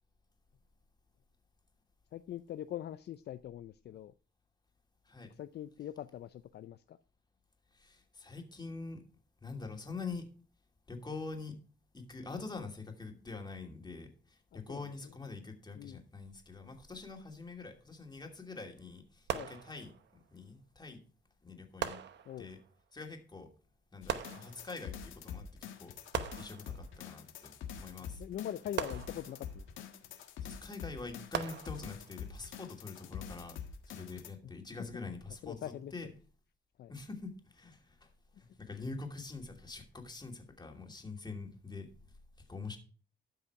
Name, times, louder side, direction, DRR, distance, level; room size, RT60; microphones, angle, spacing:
voice 1, 2.1-4.1 5.4-7.0 14.5-14.9 15.8-16.0 19.3-19.5 22.3-22.5 28.2-29.6 34.4-34.5 35.4-35.9 36.8-36.9, left 11 dB, 55° left, 12 dB, 0.5 m, -43 dB
voice 2, 7.7-9.0 9.4-10.2 10.9-11.5 11.9-21.0 21.4-22.0 22.4-22.6 22.9-23.5 23.9-26.0 26.4-28.2 30.4-33.6 33.9-36.1 36.9-38.1 38.4-41.9 42.5-42.8, left 3 dB, 20° left, 3 dB, 2.6 m, -45 dB
sound 1, 19.3-20.2 21.8-22.7 24.1-25.0 26.1-27.1 28.8-29.7 31.3-32.2, right 9 dB, 60° right, 0.9 m, -40 dB
sound 2, 24.0-34.3, left 7 dB, 80° left, 1.5 m, -46 dB
13.0 x 5.6 x 4.7 m, 0.38 s
cardioid pair, 90°, 20 cm